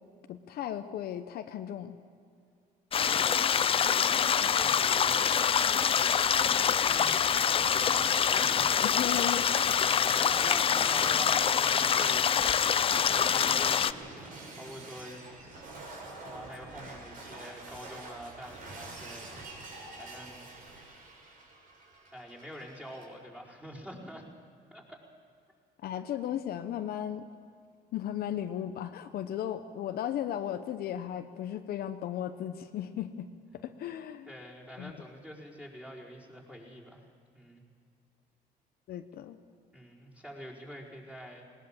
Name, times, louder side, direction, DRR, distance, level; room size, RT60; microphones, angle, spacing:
voice 1, 0.3-2.0 8.9-9.4 25.8-27.3 27.9-33.3 33.6-34.3 34.8-34.9 38.9-39.4, left 10 dB, 65° left, 8 dB, 0.9 m, -35 dB
sound 1, 2.9-13.9, left 7 dB, 35° left, 0.5 m, -25 dB
voice 2, 3.0-4.1 4.5-5.2 6.8-7.4 7.7-8.6 9.0-9.4 9.9-12.3 12.9-15.8 16.2-19.5 20.0-21.0 22.1-24.3 24.7-25.0 34.3-37.0 37.3-37.6 39.7-41.4, equal, 5° right, -4 dB, 4.9 m, -46 dB
Shatter, 7.5-23.1, right 2 dB, 55° right, 5.7 m, -48 dB
19.5 x 19.0 x 7.4 m, 2.4 s
cardioid pair, 110°, 17 cm